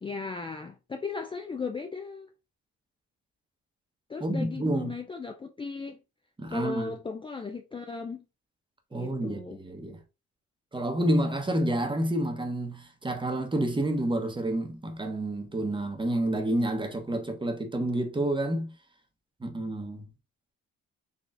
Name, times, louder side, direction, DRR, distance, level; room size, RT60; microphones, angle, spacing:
voice 1, 0.0-2.3 4.1-6.0 6.5-8.2 8.9-9.6, left 4 dB, 15° left, 0.4 m, -36 dB
voice 2, 4.2-4.9 6.4-6.9 8.9-10.0 10.7-18.7 19.4-20.0, right 1 dB, 15° right, 1.0 m, -29 dB
4.0 x 3.1 x 2.5 m
cardioid pair, 90°, 30 cm